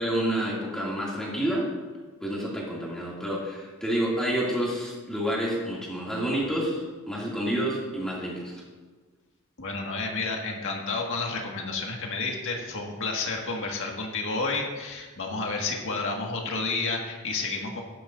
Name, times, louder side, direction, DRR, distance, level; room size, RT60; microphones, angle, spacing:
voice 1, 0.0-1.7 2.2-8.6, right 1 dB, 5° left, -6 dB, 2.5 m, -29 dB
voice 2, 9.6-17.8, left 3 dB, 60° left, 0 dB, 1.8 m, -30 dB
16.0 x 12.0 x 2.6 m, 1.4 s
head